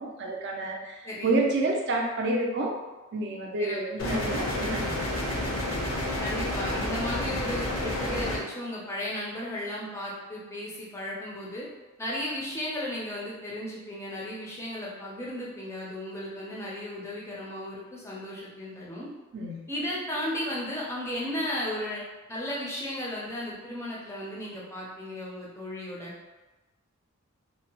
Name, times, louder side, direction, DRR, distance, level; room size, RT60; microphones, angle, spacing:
voice 1, 0.0-2.8 3.1-5.5 19.3-19.6, right 2 dB, 50° right, 0 dB, 0.4 m, -29 dB
voice 2, 1.0-1.5 3.6-4.1 6.2-11.7 12.0-19.1 19.7-22.0 22.3-26.1, left 1 dB, 10° left, -5 dB, 0.4 m, -35 dB
sound 1, 4.0-8.4, left 1 dB, 65° left, 0.5 m, -30 dB
2.7 x 2.0 x 2.8 m, 1.1 s
head